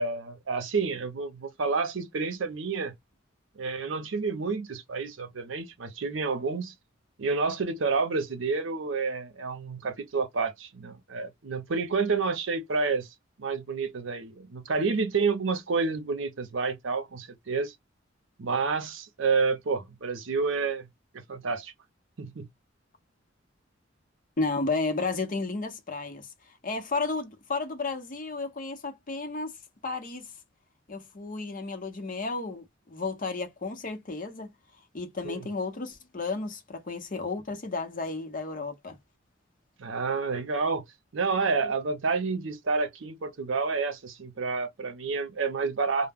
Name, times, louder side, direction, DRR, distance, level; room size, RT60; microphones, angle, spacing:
voice 1, 0.0-2.9 3.6-6.7 7.2-13.1 13.4-17.7 18.4-20.9 21.1-21.7 22.2-22.5 35.2-35.5 39.8-40.8 41.1-46.1, right 4 dB, 70° right, 0.6 m, -29 dB
voice 2, 24.4-26.3 26.6-29.5 29.8-30.3 30.9-34.5 34.9-39.0, left 3 dB, 45° left, 0.7 m, -32 dB
2.1 x 2.1 x 3.4 m
head